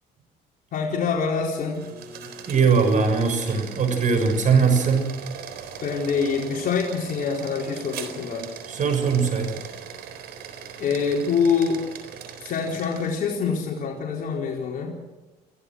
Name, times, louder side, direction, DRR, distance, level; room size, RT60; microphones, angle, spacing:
voice 1, 0.7-1.8 5.8-8.5 10.8-11.8 12.4-14.9, left 5 dB, 55° left, -2 dB, 4.3 m, -25 dB
sound 1, 1.7-13.4, right 7 dB, 75° right, 3.9 m, -40 dB
voice 2, 2.5-5.1 8.7-9.6, right 5 dB, 50° right, 7 dB, 6.4 m, -21 dB
28.5 x 16.5 x 6.4 m, 1.1 s
cardioid pair, 110°, 17 cm